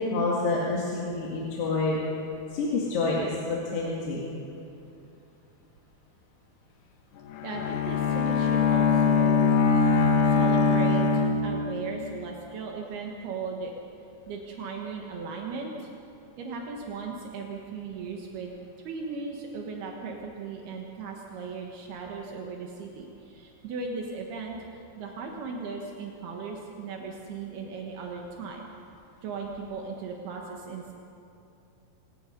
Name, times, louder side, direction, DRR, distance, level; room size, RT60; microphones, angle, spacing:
voice 1, 0.0-2.0 2.5-4.2, left 3 dB, 90° left, -5 dB, 4.3 m, -28 dB
Bowed string instrument, 7.3-12.1, left 5 dB, 65° left, 2.1 m, -23 dB
voice 2, 7.4-9.4 10.3-13.7 14.3-15.9 16.4-18.5 18.9-28.7 29.2-30.9, right 4 dB, 75° right, 0 dB, 3.4 m, -37 dB
26.0 x 19.5 x 5.4 m, 2.7 s
omnidirectional pair, 4.6 m